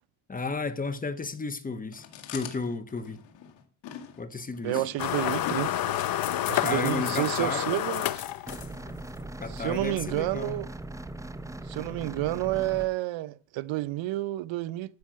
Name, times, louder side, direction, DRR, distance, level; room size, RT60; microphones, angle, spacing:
voice 1, 0.3-2.0 2.3-3.2 4.2-4.8 6.6-7.7 9.4-10.5, left 4 dB, 20° left, 1.1 m, -33 dB
Chewing mastication, 1.9-9.0, left 8 dB, 75° left, 2.2 m, -43 dB
voice 2, 4.6-5.8 6.5-8.2 9.5-10.7 11.6-15.0, right 17 dB, 85° right, 0.7 m, -30 dB
sound 1, 5.0-9.0, left 12 dB, 50° left, 0.7 m, -29 dB
sound 2, 8.5-12.9, right 2 dB, 5° right, 0.7 m, -39 dB
13.0 x 6.2 x 7.4 m
cardioid pair, 135°, 44 cm